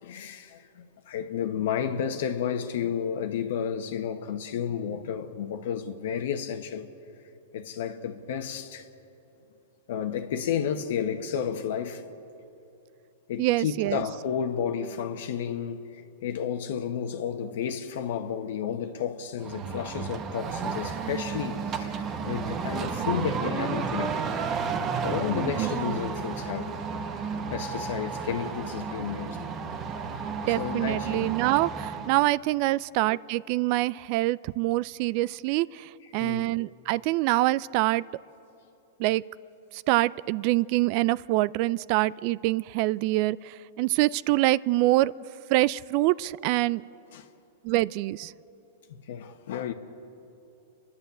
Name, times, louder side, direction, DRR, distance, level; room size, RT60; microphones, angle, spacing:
voice 1, 0.0-6.9 7.5-8.9 9.9-12.0 13.3-24.2 25.0-26.8 27.5-29.4 30.5-31.3 36.2-36.5 47.1-47.3 49.1-49.7, left 8 dB, 70° left, 1.2 m, -32 dB
voice 2, 13.4-14.0 25.6-26.0 30.2-38.0 39.0-39.2 39.7-45.1 45.5-46.8 47.6-48.3, right 18 dB, 45° right, 0.4 m, -25 dB
sound 1, 19.4-32.2, right 5 dB, 25° right, 1.2 m, -32 dB
30.0 x 11.5 x 8.3 m
hypercardioid pair, 145°, 0 cm